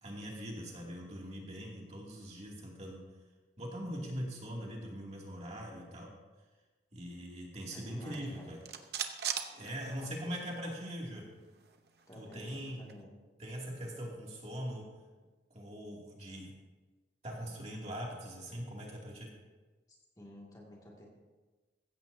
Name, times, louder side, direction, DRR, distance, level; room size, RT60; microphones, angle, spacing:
voice 1, 0.0-3.0 3.6-6.1 6.9-8.6 9.6-11.3 12.1-12.8 13.4-14.8 15.5-16.5 17.2-19.3, equal, 35° right, -2 dB, 2.5 m, -42 dB
voice 2, 7.7-8.5 10.2-10.7 12.1-13.2 19.9-21.1, left 1 dB, 20° left, -3 dB, 2.1 m, -52 dB
sound 1, 7.9-10.4 10.7-10.8 11.1-13.0, right 8 dB, 60° right, 0.9 m, -41 dB
15.5 x 15.0 x 2.7 m, 1.3 s
head